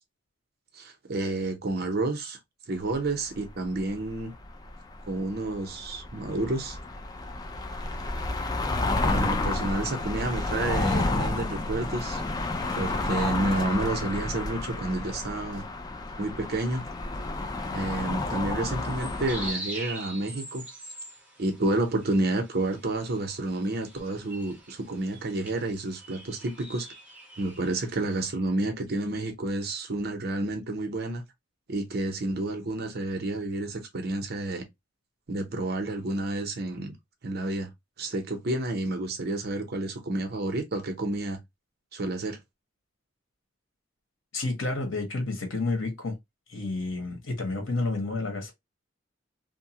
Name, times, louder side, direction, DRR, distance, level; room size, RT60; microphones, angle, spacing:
voice 1, 0.7-2.4 2.7-4.3 5.1-6.8 9.0-12.2 12.8-15.6 16.2-16.8 17.7-20.6 21.4-26.9 27.4-31.2 31.7-34.6 35.3-36.9 37.2-37.7 38.0-41.4 41.9-42.4, right 2 dB, 55° right, 0.7 m, -30 dB
sound 1, 2.9-19.5, left 2 dB, 20° left, 0.3 m, -31 dB
sound 2, 18.6-28.3, right 1 dB, 5° right, 0.9 m, -43 dB
voice 2, 44.3-46.2 46.5-48.5, left 2 dB, 85° left, 1.1 m, -30 dB
2.7 x 2.2 x 2.8 m
head